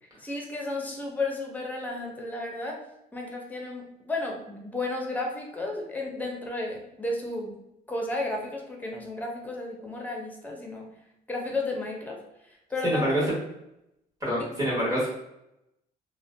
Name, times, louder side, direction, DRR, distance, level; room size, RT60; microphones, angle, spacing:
voice 1, 0.2-2.8 3.1-7.6 7.9-10.9 11.3-12.2 12.7-13.1 14.4-14.5, left 2 dB, 10° left, 0 dB, 0.6 m, -33 dB
voice 2, 12.8-13.2 14.2-15.1, equal, 20° right, -6 dB, 1.3 m, -26 dB
2.5 x 2.1 x 2.5 m, 0.85 s
cardioid pair, 110°, 17 cm